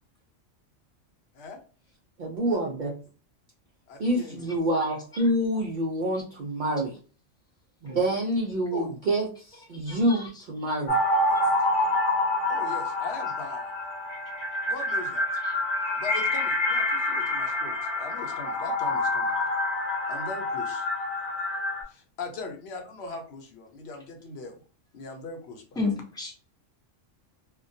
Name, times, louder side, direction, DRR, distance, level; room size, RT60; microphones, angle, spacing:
voice 1, 2.2-3.0 4.0-7.0 7.8-11.0, right 1 dB, 70° right, -1 dB, 0.4 m, -27 dB
voice 2, 3.9-4.5 8.7-9.0 12.5-13.7 14.7-15.3 16.0-19.4 20.1-20.9 21.9-24.6 24.9-25.8, left 3 dB, 60° left, 4 dB, 0.8 m, -40 dB
voice 3, 4.7-5.2 7.9-8.0 9.9-10.8 15.4-15.5 25.8-26.3, left 3 dB, 5° left, -2 dB, 0.3 m, -34 dB
sound 1, 10.9-21.8, left 2 dB, 30° left, 0.7 m, -27 dB
2.2 x 2.2 x 2.6 m, 0.38 s
omnidirectional pair, 1.3 m